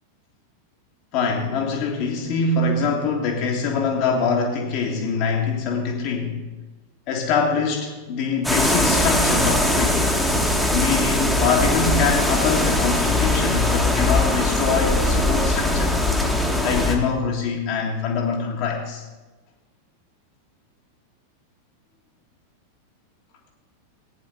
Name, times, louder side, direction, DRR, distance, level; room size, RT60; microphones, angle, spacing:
voice 1, 1.1-6.4 7.1-10.0 10.7-16.0 16.6-19.0, left 4 dB, 40° left, 0 dB, 1.6 m, -24 dB
sound 1, 8.4-17.0, left 1 dB, ahead, 1.7 m, -21 dB
15.5 x 9.4 x 3.9 m, 1.2 s
figure-of-eight pair, 90°, 0 cm